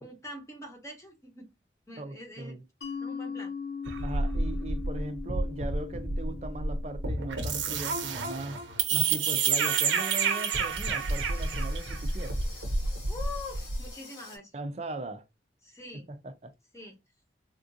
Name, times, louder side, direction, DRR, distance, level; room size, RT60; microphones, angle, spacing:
voice 1, 0.0-1.4 1.9-2.6 3.0-3.5 13.1-14.5 15.6-16.1 16.7-16.9, left 2 dB, 15° left, 0.8 m, -44 dB
voice 2, 2.0-2.6 4.0-8.6 8.9-12.4 14.5-15.2 16.1-16.5, right 2 dB, 35° right, 0.4 m, -39 dB
Mallet percussion, 2.8-8.2, left 5 dB, 65° left, 0.8 m, -40 dB
sound 1, 3.9-13.9, right 4 dB, 90° right, 0.8 m, -29 dB
sound 2, 9.0-14.4, left 3 dB, 90° left, 1.2 m, -49 dB
3.6 x 2.4 x 2.6 m
head